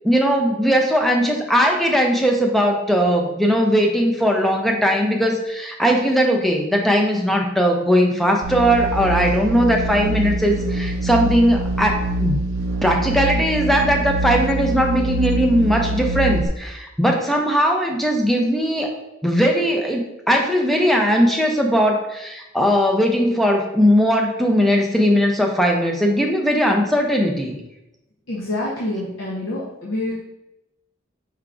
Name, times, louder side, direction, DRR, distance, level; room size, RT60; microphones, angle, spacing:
voice 1, 0.0-12.4 12.8-18.9 19.2-27.6, equal, ahead, 1 dB, 0.4 m, -19 dB
sound 1, 8.4-16.5, right 1 dB, 75° right, 0.4 m, -24 dB
voice 2, 28.3-30.2, left 1 dB, 70° left, -4 dB, 0.7 m, -27 dB
4.8 x 3.4 x 2.4 m, 0.90 s
head